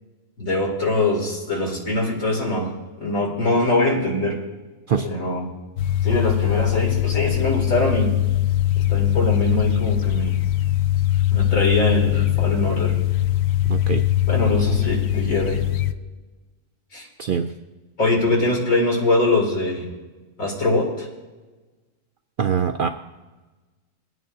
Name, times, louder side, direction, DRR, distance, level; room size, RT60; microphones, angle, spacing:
voice 1, 0.4-4.4 5.0-5.5 6.0-8.1 8.8-10.4 11.3-13.0 14.2-15.7 16.9-17.1 18.0-19.9 20.4-21.1, left 2 dB, 90° left, -1 dB, 2.9 m, -22 dB
sound 1, 5.8-15.9, left 13 dB, 65° left, 0.7 m, -21 dB
voice 2, 13.7-14.0 17.2-17.5 22.4-22.9, right 7 dB, 65° right, 6 dB, 0.5 m, -23 dB
20.5 x 9.4 x 2.7 m, 1.2 s
omnidirectional pair, 1.4 m